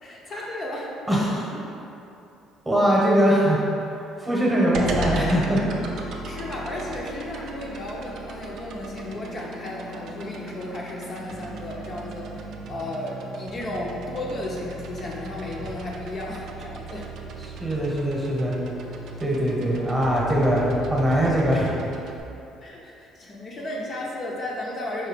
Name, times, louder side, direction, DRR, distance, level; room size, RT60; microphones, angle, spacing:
voice 1, 0.0-0.9 6.1-17.1 22.6-25.1, left 1 dB, 40° left, -4 dB, 0.5 m, -34 dB
voice 2, 1.1-1.5 2.6-3.6 4.2-5.7 17.4-18.6 19.2-21.8, equal, 15° right, -4 dB, 1.0 m, -22 dB
sound 1, 4.7-22.2, right 2 dB, 65° right, 0.4 m, -36 dB
4.6 x 2.7 x 3.3 m, 2.7 s
cardioid pair, 110°, 0 cm